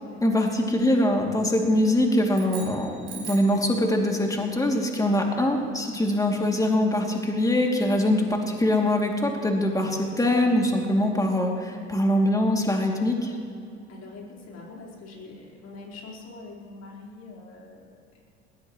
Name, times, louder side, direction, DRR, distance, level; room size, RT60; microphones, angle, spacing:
voice 1, 0.2-13.3, left 1 dB, 10° left, 1 dB, 2.8 m, -23 dB
sound 1, 2.3-3.7, right 7 dB, 50° right, 3.8 m, -41 dB
voice 2, 13.9-18.2, left 3 dB, 50° left, -2 dB, 4.6 m, -44 dB
21.0 x 17.0 x 3.2 m, 2.5 s
hypercardioid pair, 70°, 32 cm